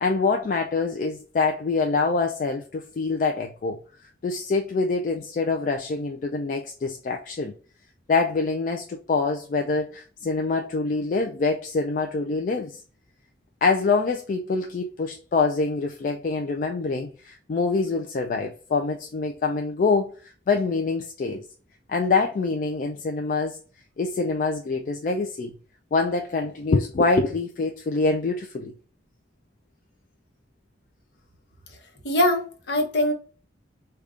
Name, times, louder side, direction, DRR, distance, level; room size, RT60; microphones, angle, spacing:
voice 1, 0.0-7.5 8.1-12.8 13.6-21.4 21.9-23.6 24.0-25.5 25.9-28.7, left 4 dB, 45° left, 0.3 m, -25 dB
voice 2, 32.0-33.1, left 1 dB, 65° left, 0.8 m, -22 dB
4.9 x 2.3 x 2.4 m
head